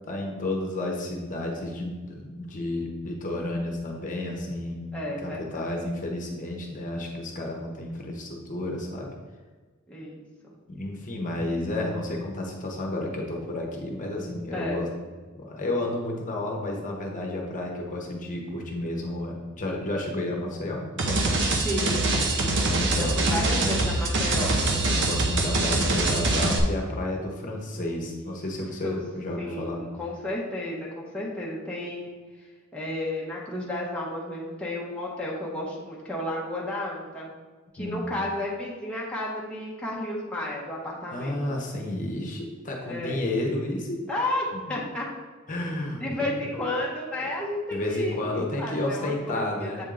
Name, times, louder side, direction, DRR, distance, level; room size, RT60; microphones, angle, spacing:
voice 1, 0.1-4.8 5.2-9.1 10.7-14.9 15.4-21.3 22.7-23.3 24.8-29.8 37.8-38.1 41.1-44.0 44.5-44.6 45.5-46.5 47.1-47.3 47.7-49.8, left 1 dB, 40° left, 0 dB, 0.9 m, -31 dB
voice 2, 4.9-5.7 9.9-10.2 14.5-14.8 21.6-22.7 22.9-24.6 27.8-28.4 28.8-29.0 29.4-32.1 32.7-37.3 37.7-41.3 42.9-43.2 44.1-45.1 46.0-49.8, left 1 dB, 5° left, -5 dB, 0.9 m, -32 dB
sound 1, 21.0-26.6, right 2 dB, 60° right, 0.8 m, -24 dB
7.8 x 3.6 x 3.8 m, 1.4 s
head